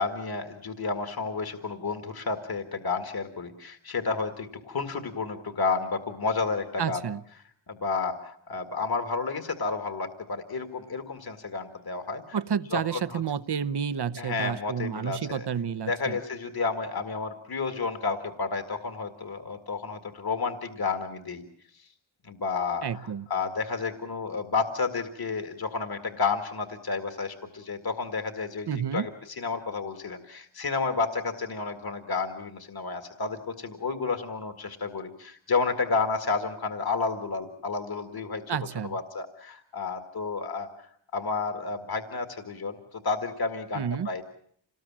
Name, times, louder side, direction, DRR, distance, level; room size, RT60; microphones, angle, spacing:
voice 1, 0.0-7.0 7.7-12.4 12.7-13.2 14.2-15.5 15.9-21.4 21.7-21.9 22.2-29.1 29.4-38.4 38.8-40.7 41.1-44.2, left 4 dB, 55° left, 7 dB, 1.9 m, -31 dB
voice 2, 6.8-7.2 12.3-16.2 22.8-23.3 28.7-29.1 38.5-39.0 43.7-44.1, right 7 dB, 60° right, 15 dB, 0.9 m, -30 dB
27.0 x 19.5 x 7.4 m, 0.64 s
wide cardioid pair, 85°, 45 cm